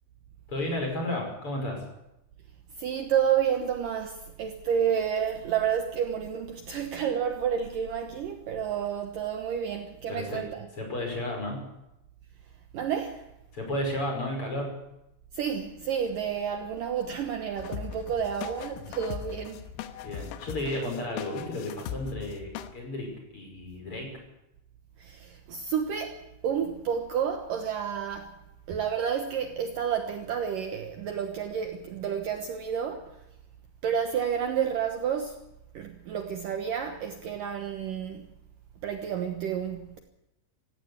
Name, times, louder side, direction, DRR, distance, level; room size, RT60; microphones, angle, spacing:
voice 1, 0.5-1.8 10.1-10.4 10.8-11.6 13.5-14.7 20.0-24.1, left 1 dB, 25° left, 6.1 m, -33 dB
voice 2, 2.8-10.7 12.7-13.3 15.3-19.7 25.0-28.3 28.7-33.2 33.8-35.4 35.7-38.3 38.8-40.0, right 8 dB, 85° right, 1.9 m, -30 dB
sound 1, 17.6-22.7, left 10 dB, 85° left, 3.7 m, -39 dB
17.5 x 16.0 x 9.8 m
omnidirectional pair, 5.9 m